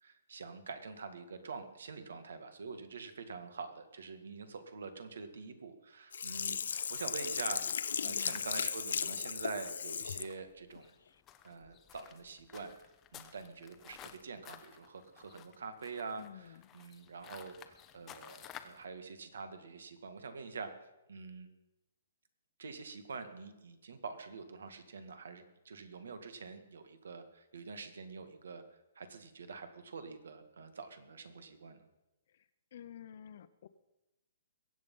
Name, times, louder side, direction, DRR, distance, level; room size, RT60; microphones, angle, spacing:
voice 1, 0.0-10.9 11.4-12.7 13.1-20.7 21.1-21.5 22.6-28.6 29.0-31.8, right 4 dB, 85° right, 9 dB, 2.0 m, -46 dB
Sink (filling or washing), 6.1-10.3 10.8-10.9, left 6 dB, 80° left, 0.6 m, -36 dB
sound 1, 6.7-18.9, left 10 dB, 15° left, 0.7 m, -55 dB
voice 2, 8.0-8.4 16.2-16.7 32.3-32.4 32.7-33.7, left 9 dB, 45° left, 13 dB, 0.8 m, -51 dB
22.0 x 8.2 x 5.6 m, 0.96 s
hypercardioid pair, 175°, 0 cm